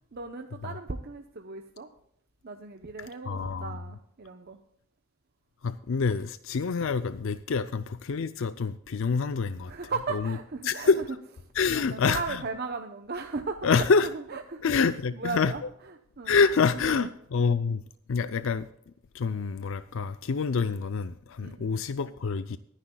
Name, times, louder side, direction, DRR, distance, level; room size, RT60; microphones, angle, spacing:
voice 1, 0.1-1.9 2.4-4.6 9.7-11.1 11.7-13.9 14.1-16.4 16.8-17.1 21.4-21.8, right 4 dB, 45° right, 5 dB, 0.7 m, -37 dB
voice 2, 3.3-3.8 5.6-9.7 10.6-11.0 11.6-12.4 13.6-14.1 14.6-15.5 16.3-17.8 18.1-18.7 19.1-22.6, left 5 dB, 60° left, 13 dB, 0.4 m, -26 dB
22.5 x 9.9 x 2.3 m, 0.73 s
head